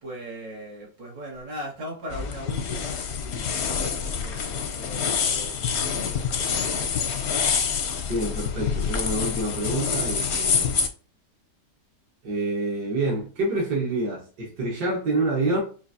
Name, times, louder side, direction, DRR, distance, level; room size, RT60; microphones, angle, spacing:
voice 1, 0.0-6.7, right 1 dB, 85° right, -3 dB, 2.5 m, -40 dB
sound 1, 2.1-10.9, left 6 dB, 65° left, 0.7 m, -26 dB
voice 2, 8.1-10.8 12.2-15.6, right 2 dB, 70° right, -3 dB, 1.8 m, -27 dB
6.0 x 2.5 x 2.7 m, 0.38 s
omnidirectional pair, 1.9 m